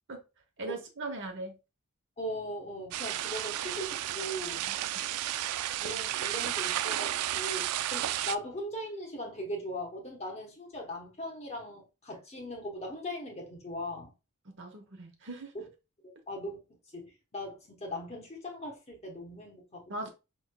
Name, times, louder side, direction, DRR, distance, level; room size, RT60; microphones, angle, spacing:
voice 1, 0.6-1.6 4.7-4.8 14.6-15.5 19.9-20.1, right 2 dB, 55° right, 1.0 m, -39 dB
voice 2, 2.2-4.7 5.8-14.1 15.5-15.7 16.3-16.6 16.9-20.1, equal, 30° left, 1.0 m, -39 dB
sound 1, 2.9-8.4, right 13 dB, 85° right, 0.3 m, -33 dB
5.4 x 3.1 x 2.2 m
head